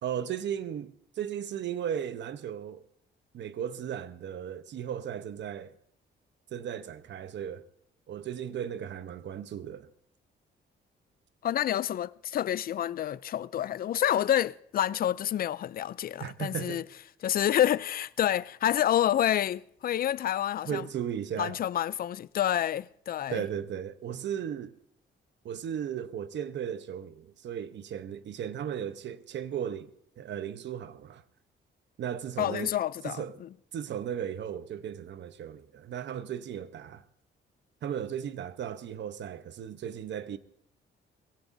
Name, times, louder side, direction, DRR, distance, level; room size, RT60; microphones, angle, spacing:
voice 1, 0.0-2.8 3.3-5.7 6.5-7.6 8.1-9.9 16.2-16.8 20.7-21.6 23.3-24.7 25.4-29.9 30.2-31.2 32.0-32.7 33.0-33.3 33.7-37.0 37.8-40.4, right 9 dB, 65° right, 0.9 m, -36 dB
voice 2, 11.4-16.8 17.2-20.9 21.4-23.4 32.4-33.5, left 11 dB, 50° left, 0.4 m, -28 dB
21.5 x 16.5 x 2.7 m
cardioid pair, 90°, 20 cm